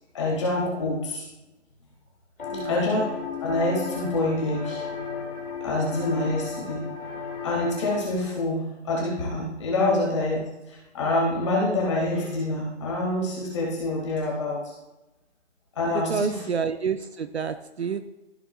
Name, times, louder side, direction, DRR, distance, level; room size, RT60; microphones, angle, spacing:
voice 1, 0.1-1.3 2.5-3.1 3.4-4.8 5.6-6.8 7.4-10.4 10.7-14.6 15.8-16.4, left 2 dB, 25° left, -4 dB, 1.9 m, -26 dB
sound 1, 2.4-8.0, left 6 dB, 45° left, 2.0 m, -35 dB
voice 2, 15.8-18.0, right 6 dB, 60° right, 10 dB, 0.6 m, -29 dB
14.5 x 6.9 x 2.3 m, 1.0 s
hypercardioid pair, 170°, 37 cm